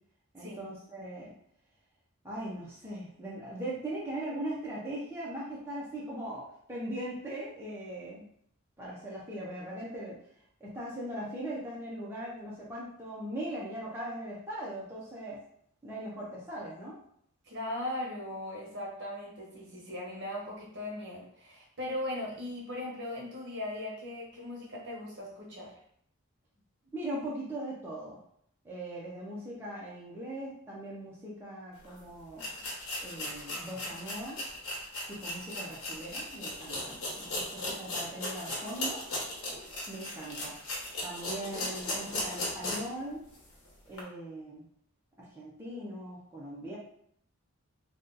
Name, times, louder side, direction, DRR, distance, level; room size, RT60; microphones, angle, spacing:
voice 1, 0.3-1.3 2.2-8.2 8.8-10.2 10.6-15.4 15.8-17.0 26.9-28.2 28.6-32.5 33.0-34.4 35.1-39.0 39.9-40.5 41.0-43.2 43.9-44.7 45.2-46.8, right 1 dB, 10° right, -7 dB, 0.5 m, -40 dB
voice 2, 17.5-25.7, left 1 dB, 55° right, -3 dB, 1.1 m, -38 dB
sound 1, 31.8-31.9 32.4-43.0 43.4-43.5 43.9-44.0, left 1 dB, 80° left, 0.9 m, -37 dB
2.7 x 2.3 x 3.8 m, 0.67 s
head